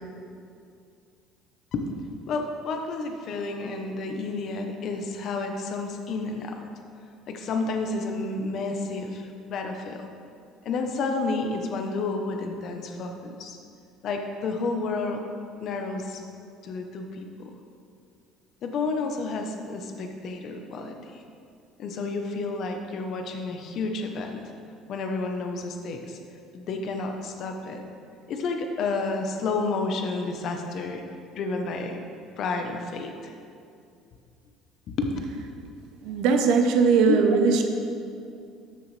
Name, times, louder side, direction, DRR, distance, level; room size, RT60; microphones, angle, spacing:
voice 1, 2.3-6.6 7.3-10.1 10.6-13.6 14.0-15.2 15.6-16.2 16.6-17.5 18.6-21.2 21.8-24.4 24.9-26.2 26.5-27.8 28.3-31.0 31.3-32.0 32.4-33.3 34.9-35.1 37.1-37.2, left 3 dB, 45° left, 4 dB, 0.8 m, -30 dB
voice 2, 36.0-37.7, right 5 dB, 65° right, 4 dB, 0.8 m, -20 dB
12.5 x 6.7 x 3.2 m, 2.4 s
cardioid pair, 160°, 0 cm